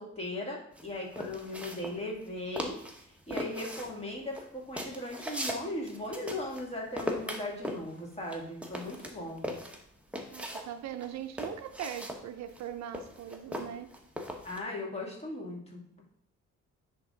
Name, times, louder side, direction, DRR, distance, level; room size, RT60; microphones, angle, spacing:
voice 1, 0.0-2.8 3.3-9.5 14.4-16.0, left 1 dB, 20° left, -2 dB, 2.4 m, -38 dB
sound 1, 0.8-2.3 2.6-3.0 3.3-6.7 7.0-10.7 11.0-14.6, equal, 5° right, 1.1 m, -39 dB
voice 2, 10.3-13.9, right 10 dB, 65° right, 9 dB, 0.5 m, -40 dB
9.8 x 3.6 x 3.9 m, 0.69 s
cardioid pair, 90°, 30 cm